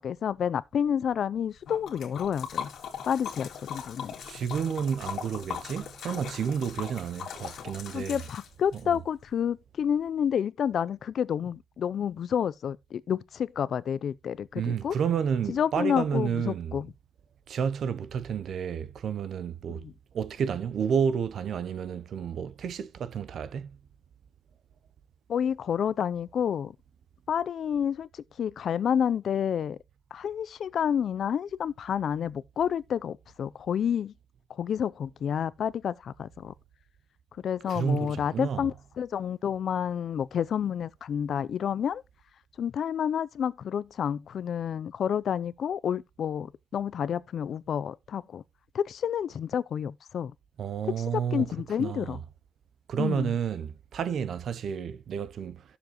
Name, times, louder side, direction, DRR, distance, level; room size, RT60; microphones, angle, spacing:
voice 1, 0.0-2.7 3.1-4.1 7.9-15.0 15.5-16.9 19.7-19.9 25.3-26.7 27.3-29.8 30.1-34.1 34.6-36.5 37.4-42.0 42.6-48.4 48.7-50.3 50.8-52.2 53.0-53.3, left 8 dB, 55° left, 0.4 m, -29 dB
Liquid, 1.7-8.8, left 8 dB, 85° left, 2.0 m, -39 dB
voice 2, 4.2-8.2 8.7-9.0 14.5-16.8 17.5-19.8 20.1-23.8 37.7-38.7 50.6-51.5 51.8-52.2 52.9-55.6, right 7 dB, 60° right, 0.5 m, -30 dB
13.0 x 7.0 x 2.9 m
wide cardioid pair, 180°, 0 cm